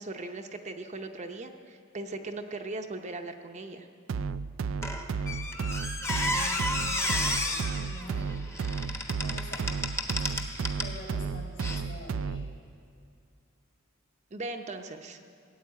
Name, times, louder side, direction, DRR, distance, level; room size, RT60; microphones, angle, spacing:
voice 1, 0.0-3.9 14.3-15.2, right 2 dB, 35° right, 5 dB, 0.8 m, -39 dB
sound 1, 4.1-12.6, right 5 dB, 65° right, 0.4 m, -33 dB
Squeak, 4.8-11.0 11.6-11.8, left 2 dB, 15° left, 1.1 m, -32 dB
voice 2, 6.0-8.4 9.2-9.7 10.8-12.6, left 1 dB, 60° left, -2 dB, 3.8 m, -46 dB
16.5 x 8.2 x 9.3 m, 2.3 s
head